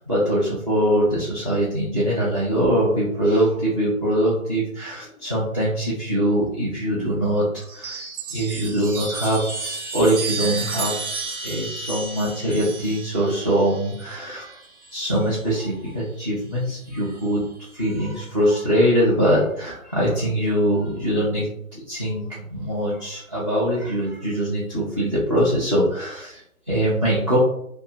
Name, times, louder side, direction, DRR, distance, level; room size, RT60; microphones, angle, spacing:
voice 1, 0.0-11.0 11.4-14.6 14.9-27.4, equal, 25° right, -7 dB, 0.4 m, -23 dB
Chime, 7.6-15.4 16.6-17.3, right 3 dB, 75° right, 0.9 m, -33 dB
2.4 x 2.1 x 3.4 m, 0.72 s
figure-of-eight pair, 135°, 44 cm